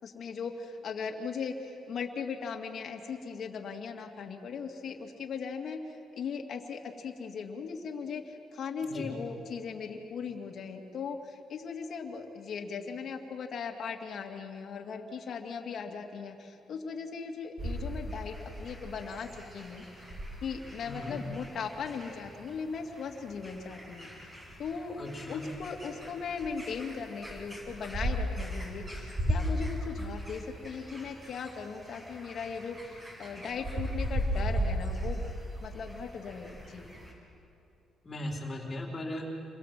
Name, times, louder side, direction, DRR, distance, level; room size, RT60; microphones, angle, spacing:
voice 1, 0.0-19.3 19.5-20.0 20.4-24.3 24.6-25.0 25.3-35.3 35.6-36.9, left 5 dB, 60° left, 3 dB, 2.7 m, -38 dB
sound 1, 17.6-37.1, equal, 20° right, 7.9 m, -37 dB
voice 2, 20.8-21.2 25.0-25.4 38.0-39.2, left 1 dB, 30° left, -1 dB, 4.1 m, -38 dB
29.0 x 23.5 x 7.7 m, 2.8 s
cardioid pair, 90°, 0 cm